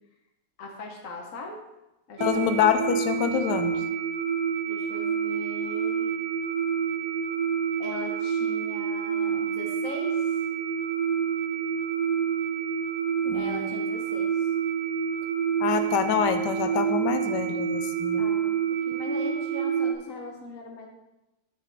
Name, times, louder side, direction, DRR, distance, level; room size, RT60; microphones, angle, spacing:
voice 1, 0.6-1.6 2.1-2.6 4.7-6.1 7.8-10.3 13.3-14.5 18.2-18.6 18.9-20.9, left 2 dB, 55° left, 0 dB, 1.2 m, -40 dB
voice 2, 2.2-3.8 13.2-13.8 15.6-18.2, left 8 dB, 75° left, 8 dB, 1.3 m, -26 dB
sound 1, 2.2-19.9, right 7 dB, 65° right, 1.0 m, -28 dB
9.2 x 6.4 x 3.3 m, 0.96 s
omnidirectional pair, 1.9 m